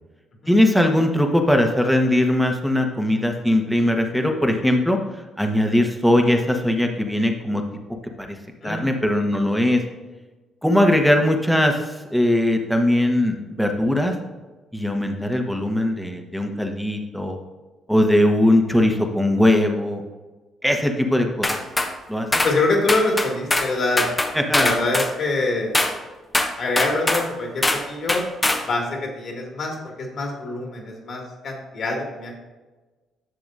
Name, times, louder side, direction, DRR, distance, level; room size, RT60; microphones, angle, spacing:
voice 1, 0.5-5.0 5.4-7.6 8.2-8.3 8.6-9.8 10.6-14.1 14.7-17.4 17.9-20.0 20.6-21.5 22.1-22.3 24.3-24.7, left 1 dB, ahead, 4 dB, 1.4 m, -20 dB
sound 1, 21.4-21.9 22.3-22.5 22.9-23.7 24.0-25.1 25.7-25.9 26.3-27.3 27.6-27.8 28.1-28.6, left 2 dB, 20° left, 1.1 m, -22 dB
voice 2, 22.4-24.1 24.5-25.7 26.6-28.2 28.7-32.3, left 2 dB, 55° left, 1 dB, 2.2 m, -25 dB
10.5 x 6.8 x 2.6 m, 1.2 s
hypercardioid pair, 50°, 0 cm